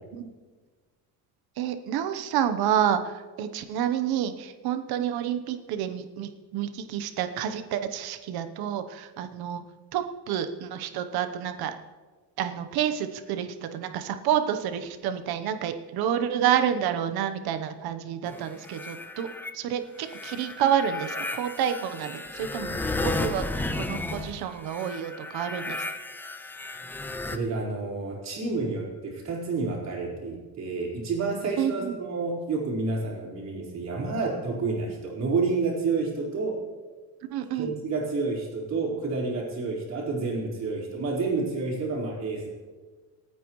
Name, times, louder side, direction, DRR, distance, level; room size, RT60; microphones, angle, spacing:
voice 1, 1.6-9.6 9.9-11.7 12.4-19.3 19.5-23.5 23.7-25.8 31.6-32.0 37.3-37.7, right 9 dB, 65° right, 9 dB, 1.1 m, -29 dB
sound 1, 18.3-19.5 20.0-27.4, left 2 dB, 5° left, 0.4 m, -34 dB
voice 2, 27.2-36.6 37.5-42.5, right 3 dB, 40° right, -3 dB, 4.3 m, -29 dB
27.0 x 9.2 x 3.1 m, 1.4 s
cardioid pair, 155°, 40 cm